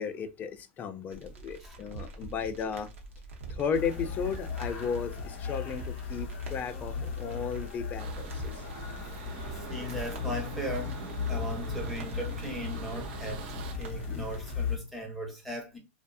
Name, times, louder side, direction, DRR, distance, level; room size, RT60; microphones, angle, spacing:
voice 1, 0.0-2.9 3.5-8.5, left 6 dB, 25° left, 0.3 m, -34 dB
sound 1, 1.1-14.6, right 3 dB, 85° right, 0.7 m, -45 dB
sound 2, 3.7-14.8, left 6 dB, 50° left, 0.8 m, -37 dB
sound 3, 8.0-13.7, right 7 dB, 55° right, 0.4 m, -44 dB
voice 2, 9.3-15.8, equal, ahead, 0.7 m, -37 dB
2.6 x 2.0 x 2.3 m
hypercardioid pair, 130°, 7 cm